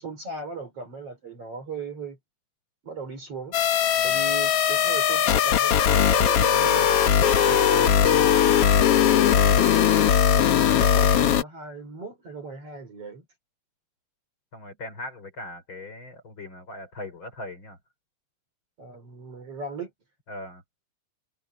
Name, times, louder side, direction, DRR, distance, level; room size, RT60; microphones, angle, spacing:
voice 1, 0.0-2.2 2.8-3.6 4.0-8.5 10.5-13.3 18.8-19.9, right 4 dB, 35° right, 4.7 m, -38 dB
sound 1, 3.5-11.4, left 9 dB, 85° left, 1.3 m, -19 dB
voice 2, 3.9-4.3 14.5-17.8 20.3-20.6, left 1 dB, 30° left, 5.1 m, -40 dB
omnidirectional pair, 4.6 m